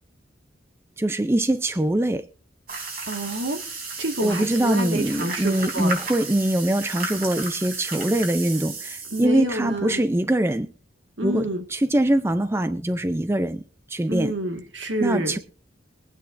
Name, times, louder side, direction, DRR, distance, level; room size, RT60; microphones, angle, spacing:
voice 1, 1.0-2.2 4.2-10.7 11.2-13.6 13.9-14.3 15.0-15.4, right 1 dB, 15° right, 0.4 m, -23 dB
sound 1, 2.7-9.2, right 3 dB, 50° right, 3.5 m, -33 dB
voice 2, 3.0-3.6 4.0-5.9 9.1-10.0 11.2-11.6 14.1-15.4, right 1 dB, 75° right, 1.8 m, -28 dB
22.0 x 8.9 x 2.6 m
head